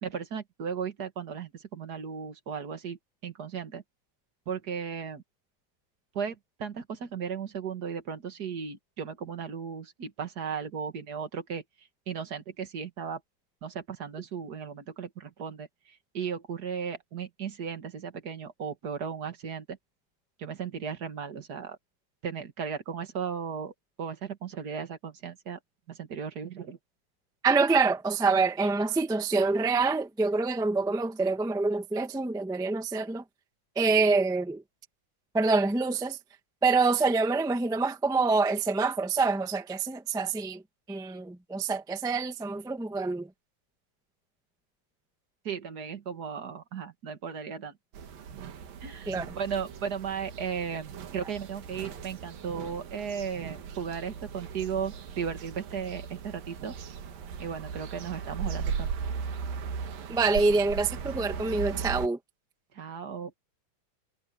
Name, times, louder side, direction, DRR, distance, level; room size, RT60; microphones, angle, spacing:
voice 1, 0.0-3.8 4.4-5.2 6.1-11.6 12.1-13.2 13.6-19.8 20.4-21.8 22.2-23.7 24.0-25.6 25.9-26.8 45.4-47.7 48.8-56.7 57.4-58.9 62.7-63.3, right 7 dB, 35° right, 1.8 m, -36 dB
voice 2, 27.4-33.2 33.7-34.6 35.3-36.2 36.6-40.6 40.9-43.3 49.1-49.3 60.1-62.2, right 4 dB, 5° right, 0.4 m, -26 dB
sound 1, 47.9-62.1, right 6 dB, 90° right, 3.7 m, -38 dB
omnidirectional pair, 3.9 m